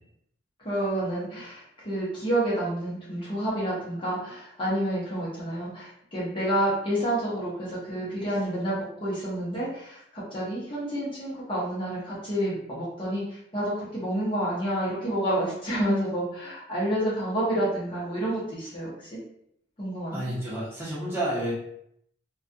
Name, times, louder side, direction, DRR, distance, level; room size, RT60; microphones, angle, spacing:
voice 1, 0.6-13.2 13.5-19.2 19.8-20.2, right 1 dB, 25° left, -8 dB, 0.8 m, -29 dB
voice 2, 20.1-21.5, right 1 dB, 15° right, -9 dB, 0.8 m, -30 dB
2.3 x 2.3 x 2.6 m, 0.73 s
head